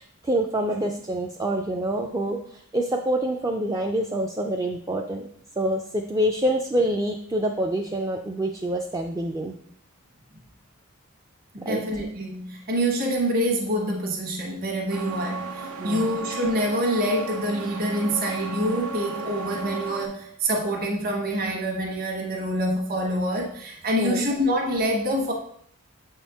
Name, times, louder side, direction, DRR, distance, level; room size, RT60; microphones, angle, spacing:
voice 1, 0.0-5.3 5.6-9.6 11.6-11.8 15.8-16.1 24.0-24.3, right 1 dB, 15° right, 1 dB, 0.3 m, -26 dB
voice 2, 11.5-25.3, equal, 45° right, -1 dB, 1.1 m, -26 dB
sound 1, 14.9-20.1, right 4 dB, 90° right, 0.7 m, -35 dB
7.1 x 4.4 x 3.5 m, 0.65 s
head